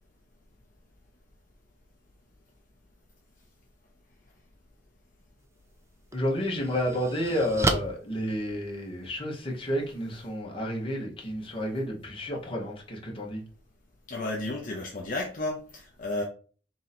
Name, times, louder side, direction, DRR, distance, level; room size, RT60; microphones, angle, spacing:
sound 1, 5.4-5.5 6.1-9.1, right 2 dB, 15° right, 0.4 m, -32 dB
voice 1, 6.1-13.4, equal, 25° left, 1.1 m, -31 dB
voice 2, 14.1-16.2, left 2 dB, 45° left, 0.7 m, -32 dB
3.8 x 2.9 x 4.1 m
head